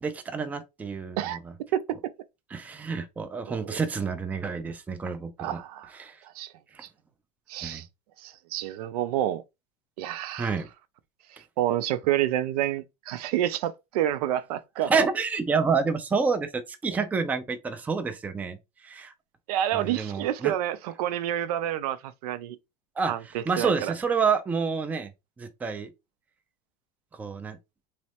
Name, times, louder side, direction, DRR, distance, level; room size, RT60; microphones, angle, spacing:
voice 1, 0.0-1.4 2.5-5.6 6.0-6.2 6.7-6.8 7.6-7.8 10.3-10.7 14.8-18.6 18.8-19.1 19.7-20.5 23.0-23.1 23.5-25.1 25.4-25.9 27.2-27.6, right 5 dB, 10° right, 0.3 m, -28 dB
voice 2, 1.7-2.1 3.5-3.8 5.4-5.9 6.4-6.5 7.5-7.8 8.2-9.4 10.0-10.5 11.6-15.1 19.5-22.6 23.1-23.9, right 12 dB, 90° right, 0.4 m, -28 dB
3.1 x 2.1 x 2.8 m
supercardioid pair, 145°, 19 cm